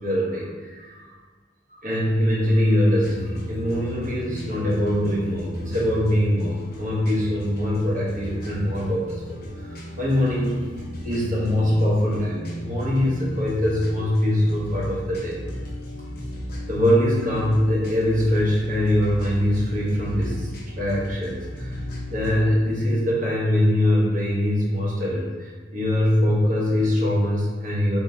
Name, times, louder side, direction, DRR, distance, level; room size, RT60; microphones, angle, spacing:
voice 1, 0.0-1.1 1.7-10.7 11.0-15.3 16.7-20.5 20.8-21.8 22.1-28.0, left 1 dB, 45° right, -6 dB, 1.3 m, -23 dB
sound 1, 3.0-22.4, equal, 55° left, 1.0 m, -35 dB
3.9 x 3.8 x 2.8 m, 1.5 s
head